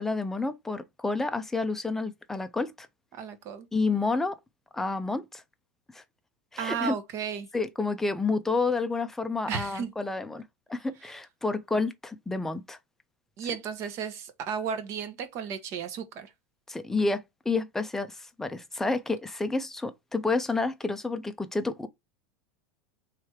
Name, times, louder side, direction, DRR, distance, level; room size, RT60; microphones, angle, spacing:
voice 1, 0.0-2.9 3.7-4.4 4.7-5.4 5.9-6.0 6.5-6.9 7.5-10.4 10.7-12.8 16.7-21.9, left 3 dB, 5° left, 0.4 m, -29 dB
voice 2, 3.1-3.7 6.6-7.5 9.5-9.9 13.4-16.3, right 7 dB, 45° right, 0.9 m, -34 dB
3.2 x 3.2 x 4.6 m
supercardioid pair, 145°, 7 cm